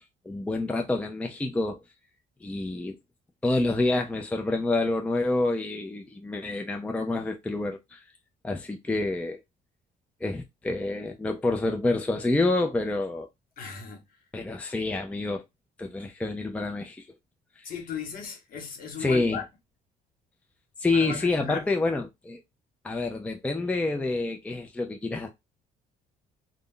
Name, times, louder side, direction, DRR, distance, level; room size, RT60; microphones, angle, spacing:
voice 1, 0.3-1.8 2.4-3.0 3.4-8.0 8.4-9.4 10.2-13.3 14.3-15.4 15.8-17.1 19.0-19.4 20.8-22.4 22.8-25.3, left 2 dB, 10° left, 0.4 m, -28 dB
voice 2, 13.6-14.0 17.6-19.4 20.9-21.7, left 6 dB, 55° left, 1.2 m, -37 dB
2.4 x 2.1 x 3.7 m
cardioid pair, 110°, 17 cm